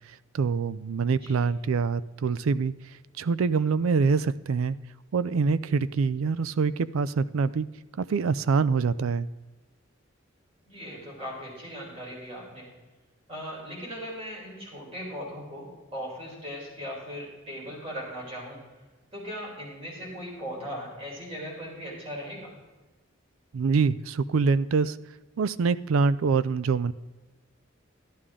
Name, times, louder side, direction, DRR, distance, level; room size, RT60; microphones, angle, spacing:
voice 1, 0.3-2.7 3.2-4.8 5.1-7.7 8.0-9.3 23.5-25.0 25.4-26.9, right 5 dB, 85° right, 16 dB, 0.4 m, -25 dB
voice 2, 10.7-12.7 13.3-18.6 19.1-22.5, equal, 30° right, -3 dB, 4.2 m, -38 dB
12.5 x 11.5 x 3.7 m, 1.2 s
head